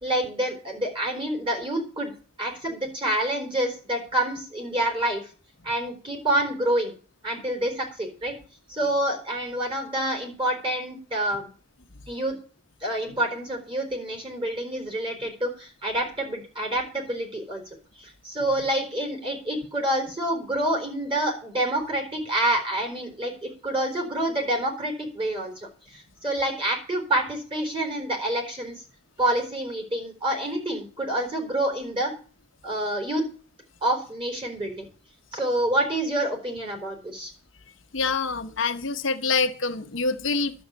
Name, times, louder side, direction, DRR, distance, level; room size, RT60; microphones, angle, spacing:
voice 1, 0.0-2.1 2.4-5.2 5.6-6.9 7.2-8.3 8.7-11.5 12.1-12.4 12.8-17.6 18.0-28.8 29.2-32.1 32.6-33.2 33.8-34.9 35.3-37.3, right 1 dB, 25° right, 4.0 m, -27 dB
voice 2, 37.9-40.5, left 4 dB, 85° left, 1.1 m, -26 dB
11.5 x 7.1 x 8.2 m
head